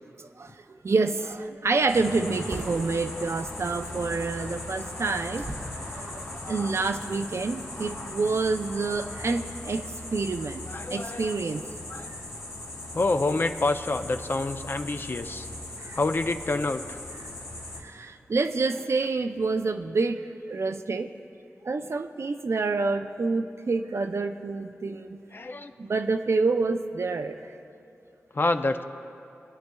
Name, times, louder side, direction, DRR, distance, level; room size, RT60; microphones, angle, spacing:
voice 1, 0.2-0.5 0.8-5.5 5.7-9.8 10.1-10.6 10.9-11.6 15.8-16.0 17.8-20.2 20.5-21.1 21.6-25.2 25.8-27.4, right 3 dB, 60° right, 7 dB, 0.4 m, -27 dB
sound 1, 1.2-7.5, right 1 dB, 85° right, 1.3 m, -45 dB
sound 2, 1.9-17.8, left 2 dB, 80° left, 1.3 m, -39 dB
voice 2, 6.3-6.7 10.7-11.3 11.9-12.1 12.9-15.5 15.9-17.0 25.3-25.7 28.3-28.8, left 2 dB, 45° left, 8 dB, 0.5 m, -28 dB
19.5 x 9.3 x 2.3 m, 2.8 s
cardioid pair, 45°, 5 cm